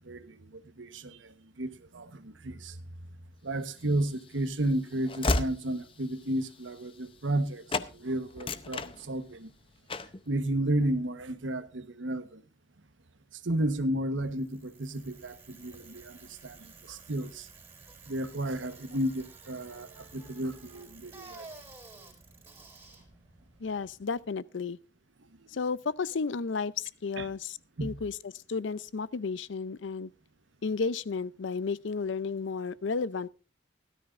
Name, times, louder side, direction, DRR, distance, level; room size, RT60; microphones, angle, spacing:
voice 1, 0.1-1.2 1.6-2.7 3.4-7.6 7.9-9.5 10.3-12.4 13.4-16.2 16.4-17.5 18.1-21.5 27.2-27.3 27.8-27.9, right 1 dB, 85° right, 1.2 m, -32 dB
Train / Slam, 3.8-7.4 7.7-7.9 8.3-9.5 9.9-10.2, left 2 dB, 30° left, 0.6 m, -34 dB
Bicycle, 14.2-24.3, right 3 dB, 15° right, 3.9 m, -52 dB
voice 2, 23.6-24.8 25.5-30.1 30.6-33.3, left 4 dB, 80° left, 0.5 m, -33 dB
17.0 x 13.0 x 2.5 m
head